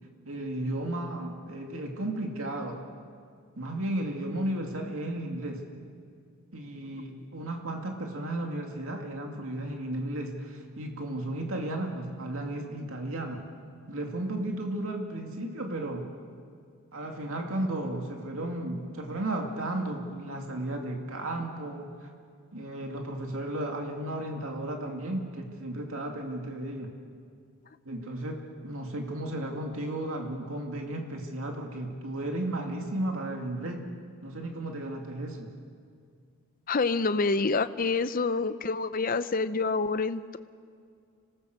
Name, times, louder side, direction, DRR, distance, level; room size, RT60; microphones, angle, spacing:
voice 1, 0.3-2.9 3.6-5.7 6.5-13.5 13.9-16.1 16.9-22.1 22.5-26.9 27.8-33.9 34.2-35.5, right 1 dB, 75° right, 2 dB, 2.3 m, -34 dB
voice 2, 36.7-40.4, left 4 dB, 40° left, 13 dB, 0.6 m, -27 dB
26.0 x 18.5 x 6.6 m, 2.2 s
head